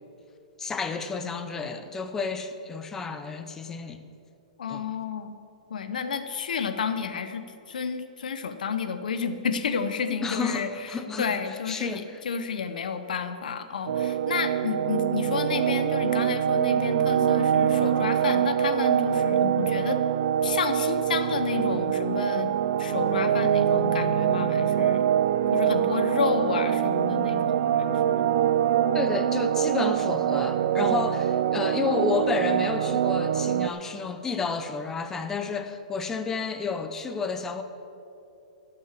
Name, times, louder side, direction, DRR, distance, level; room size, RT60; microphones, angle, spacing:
voice 1, 0.6-4.0 4.7-4.8 10.1-12.2 28.9-37.6, left 5 dB, 10° left, 9 dB, 0.6 m, -31 dB
voice 2, 4.6-5.4 5.7-20.0 20.4-25.0 25.5-28.3, left 6 dB, 85° left, 9 dB, 0.8 m, -31 dB
sound 1, 13.9-33.7, right 9 dB, 55° right, 0.4 m, -24 dB
12.5 x 6.0 x 7.5 m, 2.7 s
hypercardioid pair, 165°, 4 cm